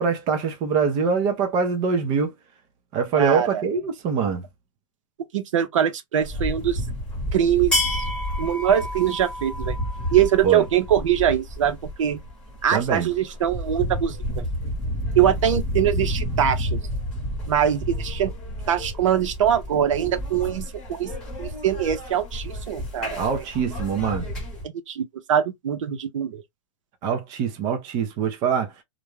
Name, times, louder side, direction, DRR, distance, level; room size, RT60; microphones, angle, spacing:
voice 1, 0.0-2.3 2.9-4.4 10.4-10.6 12.7-13.1 23.2-24.3 27.0-28.7, right 6 dB, 20° right, 0.4 m, -24 dB
voice 2, 3.2-3.6 5.3-6.8 7.3-8.0 8.4-9.8 10.1-12.2 12.6-14.4 15.2-16.8 17.5-18.3 18.7-21.1 21.4-23.4 24.6-26.4, right 9 dB, 65° right, 0.7 m, -23 dB
sound 1, 6.2-24.6, equal, 5° left, 1.1 m, -30 dB
2.4 x 2.1 x 3.1 m
hypercardioid pair, 165°, 17 cm